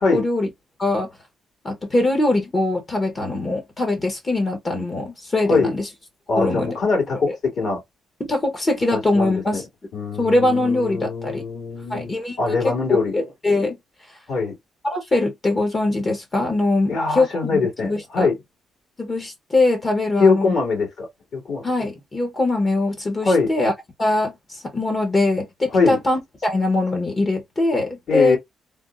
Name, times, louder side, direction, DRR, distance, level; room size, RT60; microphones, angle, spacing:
voice 1, 0.1-0.5 0.8-1.1 1.6-5.9 6.3-6.8 7.3-7.4 8.2-9.6 10.2-11.4 11.9-13.8 14.8-18.3 19.0-20.5 21.6-23.7 24.0-28.4, left 2 dB, 30° left, 1.0 m, -22 dB
voice 2, 6.3-7.8 8.9-9.6 9.9-12.1 12.4-13.1 14.3-14.5 16.9-18.3 20.2-21.1 21.3-21.6 23.2-23.5 25.7-26.0 28.1-28.4, left 4 dB, 55° left, 2.1 m, -22 dB
3.5 x 2.1 x 2.5 m
cardioid pair, 90°, 0 cm